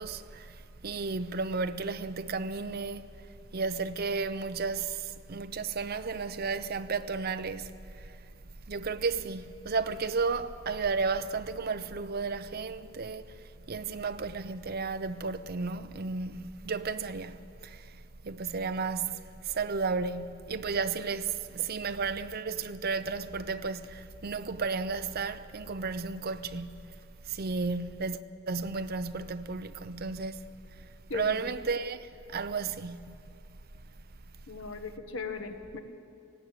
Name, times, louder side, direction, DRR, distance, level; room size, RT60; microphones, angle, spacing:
voice 1, 0.0-3.1 3.5-7.7 8.0-8.1 8.7-13.3 13.7-18.0 18.2-26.9 27.3-28.2 28.5-30.5 31.1-33.1, right 4 dB, 50° right, 0.7 m, -33 dB
voice 2, 31.1-31.5 34.5-35.8, left 4 dB, 70° left, 1.5 m, -38 dB
18.5 x 16.0 x 9.0 m
head